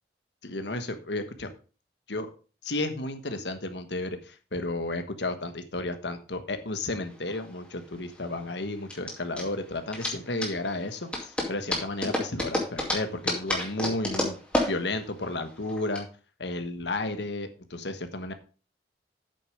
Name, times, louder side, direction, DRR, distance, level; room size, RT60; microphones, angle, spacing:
voice 1, 0.4-1.5 2.1-2.3 2.6-14.4 14.7-16.1 16.4-18.3, left 2 dB, 80° left, 8 dB, 1.4 m, -32 dB
sound 1, 7.1-16.0, left 1 dB, 5° left, 2.3 m, -31 dB
8.5 x 6.8 x 5.0 m, 0.35 s
head